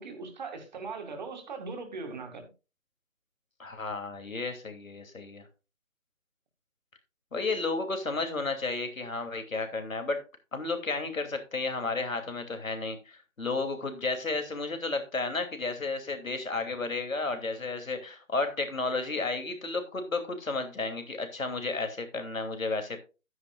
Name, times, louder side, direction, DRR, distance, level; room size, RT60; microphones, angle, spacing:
voice 1, 0.0-2.5, right 4 dB, 35° right, 2.2 m, -39 dB
voice 2, 3.6-5.5 7.3-10.2 10.5-23.0, left 3 dB, 80° left, 2.8 m, -32 dB
11.5 x 9.5 x 2.4 m
figure-of-eight pair, 160°, 40 cm